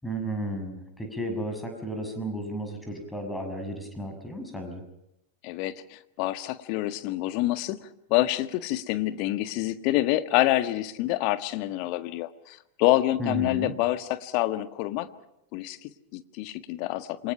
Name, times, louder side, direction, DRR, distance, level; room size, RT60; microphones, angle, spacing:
voice 1, 0.0-4.8 13.2-13.7, right 1 dB, 5° left, 5 dB, 6.4 m, -33 dB
voice 2, 5.4-15.1 15.5-17.3, left 16 dB, 45° left, 11 dB, 1.6 m, -27 dB
28.0 x 25.0 x 5.8 m, 0.85 s
figure-of-eight pair, 90°, 0 cm